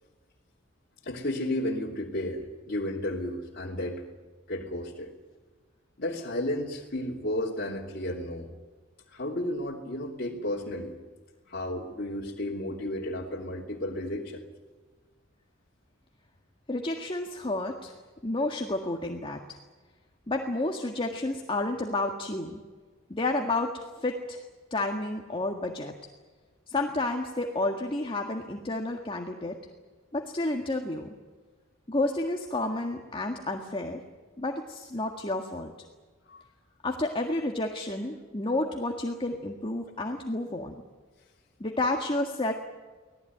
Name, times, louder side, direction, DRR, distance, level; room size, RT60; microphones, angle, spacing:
voice 1, 1.0-4.0 4.5-5.1 6.0-8.5 9.1-10.9 11.5-14.4 36.3-36.4, left 1 dB, 50° left, -4 dB, 3.1 m, -33 dB
voice 2, 16.7-17.9 18.2-19.6 20.3-22.6 23.1-24.4 24.7-25.9 26.7-29.6 30.1-31.1 31.9-34.0 34.4-35.7 36.8-40.8 41.6-42.5, left 2 dB, 25° left, 2 dB, 1.8 m, -30 dB
25.0 x 18.0 x 9.4 m, 1.4 s
head